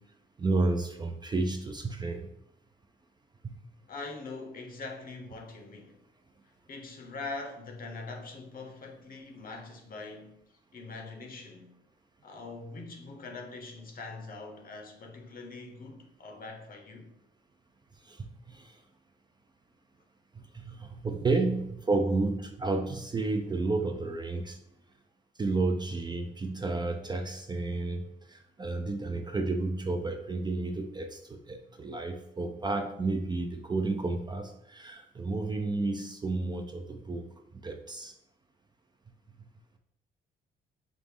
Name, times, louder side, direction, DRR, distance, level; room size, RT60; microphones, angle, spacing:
voice 1, 0.4-2.3 3.4-3.5 18.0-18.8 20.3-24.6 25.4-38.1 39.4-39.5, right 3 dB, 20° right, 0.4 m, -31 dB
voice 2, 3.9-6.0 6.7-10.4 10.7-11.7 12.2-17.1, left 3 dB, 45° left, 0.8 m, -43 dB
5.0 x 2.0 x 3.5 m
cardioid pair, 90°, 20 cm